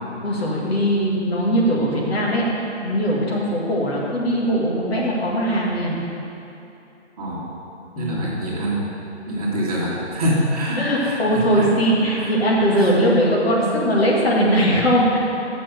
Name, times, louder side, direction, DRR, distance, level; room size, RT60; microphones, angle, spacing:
voice 1, 0.2-2.4 2.8-6.0 8.0-8.2 10.8-15.2, equal, 60° left, -4 dB, 1.9 m, -20 dB
voice 2, 7.2-7.5 8.0-8.8 9.3-11.7 12.2-12.3 12.7-12.9, equal, 35° right, -5 dB, 1.5 m, -25 dB
7.1 x 6.1 x 6.4 m, 2.9 s
hypercardioid pair, 165°, 35 cm